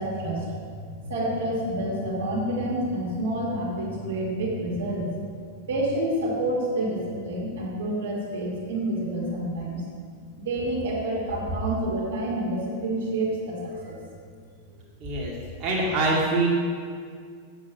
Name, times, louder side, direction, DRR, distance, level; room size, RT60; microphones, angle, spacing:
voice 1, 0.0-5.4 5.7-9.8 10.4-14.0, right 1 dB, 60° right, -4 dB, 2.3 m, -28 dB
voice 2, 15.0-15.3 15.6-16.5, right 2 dB, 35° right, -5 dB, 2.1 m, -24 dB
7.5 x 7.3 x 6.2 m, 2.1 s
figure-of-eight pair, 90°, 0 cm